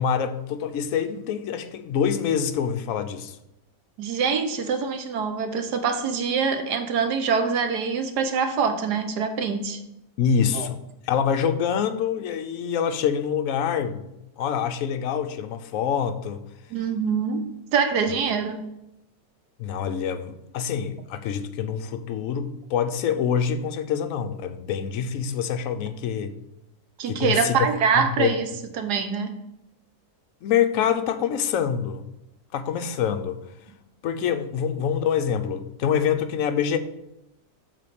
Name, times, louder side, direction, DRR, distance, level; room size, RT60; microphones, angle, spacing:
voice 1, 0.0-3.4 10.2-10.8 11.1-14.1 14.4-16.4 19.6-26.3 27.1-27.7 28.0-28.3 30.4-32.1 32.5-33.4 34.0-36.8, left 8 dB, 65° left, 1.0 m, -25 dB
voice 2, 4.0-9.8 10.5-10.7 16.7-18.7 27.0-28.5 28.8-29.4, right 6 dB, 90° right, 1.5 m, -24 dB
7.7 x 3.8 x 6.6 m
omnidirectional pair, 1.7 m